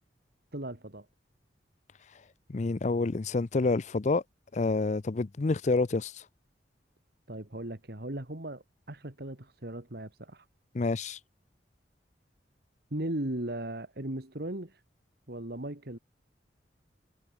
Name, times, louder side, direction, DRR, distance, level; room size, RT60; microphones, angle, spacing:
voice 1, 0.5-1.1 7.3-10.5 12.9-14.8 15.3-16.0, right 1 dB, 60° right, 2.3 m, -37 dB
voice 2, 2.5-4.2 4.5-6.1 10.7-11.2, left 3 dB, 40° left, 0.5 m, -28 dB
head